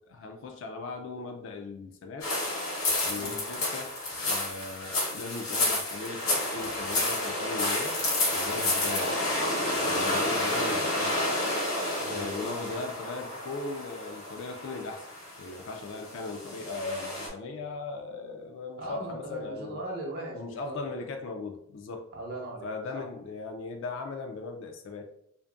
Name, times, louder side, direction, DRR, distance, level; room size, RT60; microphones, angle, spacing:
voice 1, 0.1-2.3 3.0-8.0 8.3-9.3 9.8-11.4 12.1-15.1 15.4-19.8 20.3-22.1 22.6-25.1, left 3 dB, 65° left, 4 dB, 0.3 m, -38 dB
sound 1, 2.2-17.3, left 2 dB, 85° left, 0.9 m, -30 dB
voice 2, 8.5-8.9 10.0-10.1 12.0-12.8 18.8-20.8 22.1-23.0, right 1 dB, 50° right, -1 dB, 0.7 m, -39 dB
2.5 x 2.5 x 2.3 m, 0.72 s
head